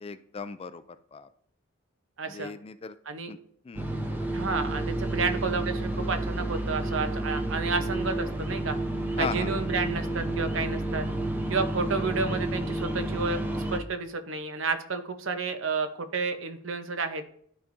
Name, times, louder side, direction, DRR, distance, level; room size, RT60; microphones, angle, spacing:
voice 1, 0.0-0.8 1.1-1.3 2.3-2.9 3.3-3.4 3.7-3.9 4.2-4.3 9.2-9.5, left 5 dB, 30° left, 13 dB, 0.3 m, -36 dB
voice 2, 2.2-2.5 3.1-3.3 4.3-8.8 9.2-11.0 11.5-17.2, right 4 dB, 70° right, 8 dB, 0.8 m, -31 dB
sound 1, 3.7-13.8, right 1 dB, 10° right, 0.7 m, -30 dB
12.0 x 5.0 x 2.6 m, 0.64 s
head